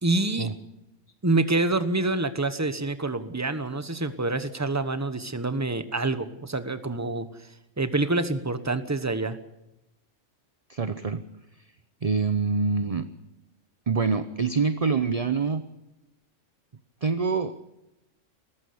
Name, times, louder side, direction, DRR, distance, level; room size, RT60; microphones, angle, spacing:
voice 1, 0.0-0.5 1.2-7.3 7.8-9.4, right 2 dB, 15° right, 12 dB, 1.1 m, -26 dB
voice 2, 10.7-11.2 12.0-13.0 13.9-15.6 17.0-17.5, right 5 dB, 35° right, 11 dB, 0.7 m, -25 dB
19.5 x 14.5 x 9.7 m, 0.93 s
omnidirectional pair, 1.3 m